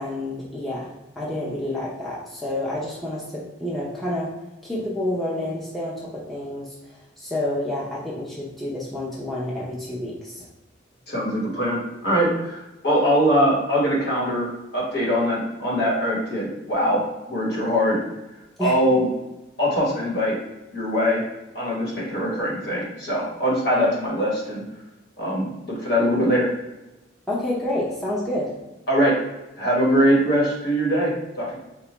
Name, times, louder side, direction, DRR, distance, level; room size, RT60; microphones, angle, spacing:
voice 1, 0.0-4.3 4.6-10.5 18.6-18.8 27.3-28.5, left 1 dB, ahead, -7 dB, 0.5 m, -29 dB
voice 2, 11.1-18.0 18.6-19.1 19.6-20.3 20.7-21.2 21.5-24.6 25.2-26.5 28.9-29.1 29.6-31.6, equal, 60° left, -4 dB, 1.1 m, -22 dB
4.2 x 2.2 x 2.9 m, 1.0 s
head